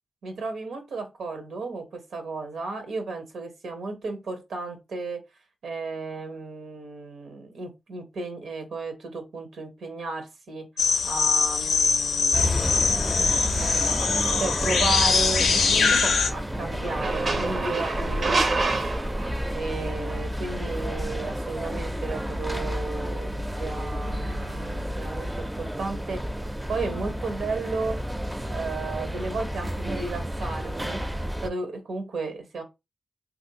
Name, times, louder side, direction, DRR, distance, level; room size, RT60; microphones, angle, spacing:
voice 1, 0.2-5.2 5.6-10.6 11.0-12.7 13.2-18.9 19.5-28.0 28.5-32.6, right 3 dB, 90° right, 0.8 m, -34 dB
sound 1, 10.8-16.3, left 5 dB, 90° left, 0.4 m, -23 dB
sound 2, 12.3-31.5, equal, 10° right, 0.4 m, -31 dB
sound 3, 14.3-14.5 16.8-19.7, right 3 dB, 60° right, 0.5 m, -28 dB
2.9 x 2.5 x 2.7 m
cardioid pair, 60°, 0 cm